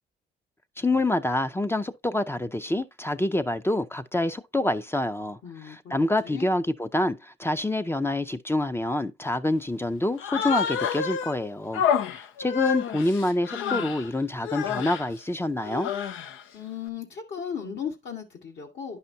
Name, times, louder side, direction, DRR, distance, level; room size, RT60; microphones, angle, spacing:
voice 1, 0.8-11.8 12.4-15.9, left 1 dB, 10° left, 0.5 m, -27 dB
voice 2, 5.4-6.5 16.5-19.0, left 7 dB, 65° left, 1.7 m, -36 dB
Human voice, 10.2-11.3 11.7-14.1 14.4-15.1 15.6-16.4, left 7 dB, 85° left, 0.7 m, -28 dB
10.5 x 5.6 x 2.7 m
cardioid pair, 90°, 20 cm